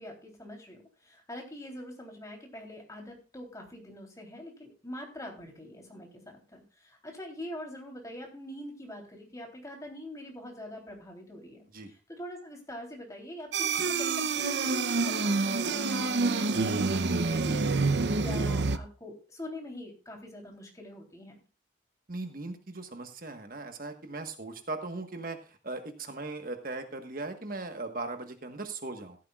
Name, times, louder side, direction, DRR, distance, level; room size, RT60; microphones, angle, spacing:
voice 1, 0.0-21.4, left 1 dB, 20° left, 1 dB, 3.4 m, -44 dB
sound 1, 13.5-18.8, right 4 dB, 70° right, 0.7 m, -27 dB
voice 2, 22.1-29.2, right 3 dB, 50° right, 6 dB, 1.4 m, -38 dB
15.5 x 13.0 x 2.4 m, 0.33 s
head